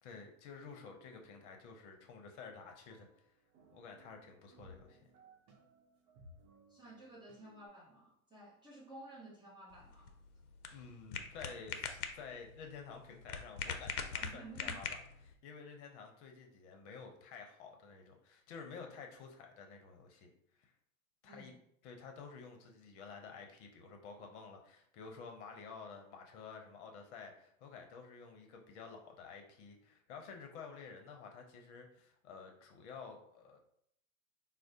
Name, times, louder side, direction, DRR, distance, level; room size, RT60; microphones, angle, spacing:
voice 1, 0.0-3.1 3.7-5.0 10.7-20.3 20.6-20.7 21.2-21.5 21.8-33.6, left 5 dB, 50° left, 3 dB, 0.7 m, -51 dB
sound 1, 0.8-7.7, equal, 45° right, 0.8 m, -63 dB
voice 2, 6.7-10.2 14.2-14.8 21.2-21.6, right 2 dB, 10° right, -4 dB, 0.6 m, -54 dB
sound 2, 9.7-15.3, left 6 dB, 85° left, 0.6 m, -43 dB
4.5 x 2.0 x 2.7 m, 0.70 s
hypercardioid pair, 115°, 43 cm